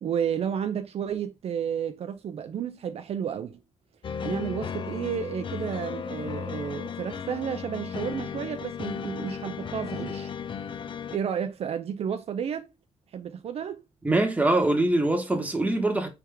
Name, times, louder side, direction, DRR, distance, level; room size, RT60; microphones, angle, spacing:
voice 1, 0.0-3.6 4.2-10.3 11.1-12.7 13.1-13.8, right 8 dB, 60° right, 0.4 m, -31 dB
sound 1, 4.0-11.2, left 7 dB, 45° left, 0.4 m, -35 dB
voice 2, 14.0-16.1, right 2 dB, 10° right, 1.2 m, -23 dB
4.6 x 3.4 x 3.4 m
cardioid pair, 115°, 12 cm